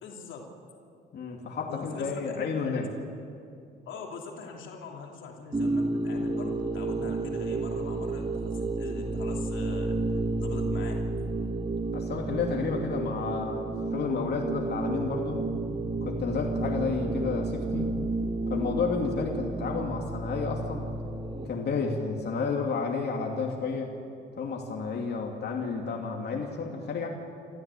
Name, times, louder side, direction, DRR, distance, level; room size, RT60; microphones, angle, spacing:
voice 1, 0.0-0.5 1.7-2.9 3.9-10.0 10.4-10.9, left 4 dB, 75° left, 0 dB, 3.1 m, -42 dB
voice 2, 1.1-2.9 11.9-15.4 16.0-17.9 18.5-20.8 21.5-23.9 24.4-27.1, left 4 dB, 55° left, 0 dB, 2.8 m, -31 dB
sound 1, 5.5-21.5, right 2 dB, 25° right, 2.0 m, -31 dB
28.0 x 14.0 x 8.7 m, 2.5 s
cardioid pair, 90°, 20 cm